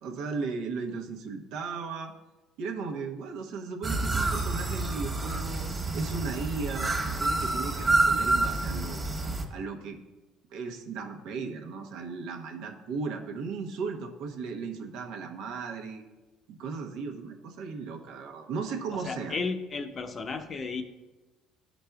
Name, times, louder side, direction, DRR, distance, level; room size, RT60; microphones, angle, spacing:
voice 1, 0.0-2.1 2.6-5.7 5.9-9.0 9.5-10.0 10.5-16.0 16.5-19.3, right 4 dB, 80° right, 3 dB, 0.9 m, -36 dB
sound 1, 3.8-9.4, right 2 dB, 20° right, 1.2 m, -28 dB
voice 2, 18.9-20.8, left 4 dB, 35° left, 7 dB, 0.6 m, -34 dB
13.0 x 5.1 x 2.3 m, 1.2 s
cardioid pair, 105°, 0 cm